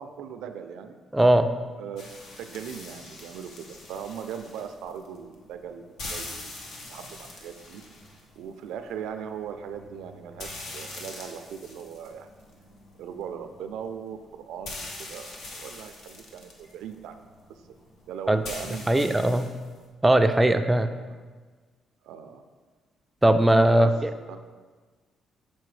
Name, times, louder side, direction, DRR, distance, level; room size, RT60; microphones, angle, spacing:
voice 1, 0.0-1.0 1.8-2.1 2.4-7.8 8.4-12.3 13.0-17.2 17.5-17.6 18.0-19.4 21.1-21.2 22.0-22.4 23.8-23.9 24.3-24.4, right 8 dB, 90° right, 8 dB, 0.4 m, -39 dB
voice 2, 1.1-1.5 18.3-18.4 18.9-19.4 20.0-20.9 23.2-23.9, right 1 dB, 10° right, 7 dB, 0.3 m, -19 dB
sound 1, 2.0-19.9, left 2 dB, 75° left, 1.0 m, -44 dB
6.8 x 4.3 x 3.2 m, 1.4 s
cardioid pair, 90°, 0 cm